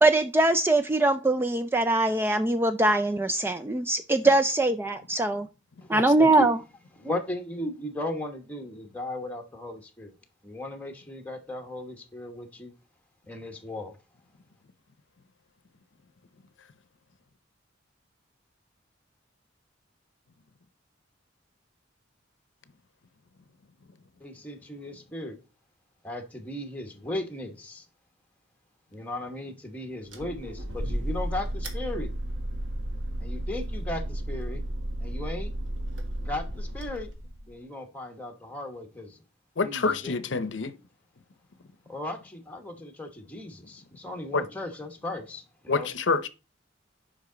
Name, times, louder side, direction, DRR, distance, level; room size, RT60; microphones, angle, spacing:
voice 1, 0.0-5.5 5.9-6.6, right 2 dB, 10° right, 0.3 m, -22 dB
voice 2, 5.9-6.3 39.6-40.7 44.3-44.4 45.7-46.3, left 4 dB, 70° left, 0.7 m, -27 dB
voice 3, 7.0-10.1 10.4-12.7 13.3-14.0 24.2-25.4 26.0-27.8 28.9-32.1 33.2-34.6 35.0-35.5 36.2-37.1 37.5-39.2 39.6-40.2 41.9-45.9, left 1 dB, 10° left, 1.2 m, -36 dB
sound 1, 30.1-37.5, right 1 dB, 85° right, 1.6 m, -33 dB
8.2 x 5.4 x 3.9 m
head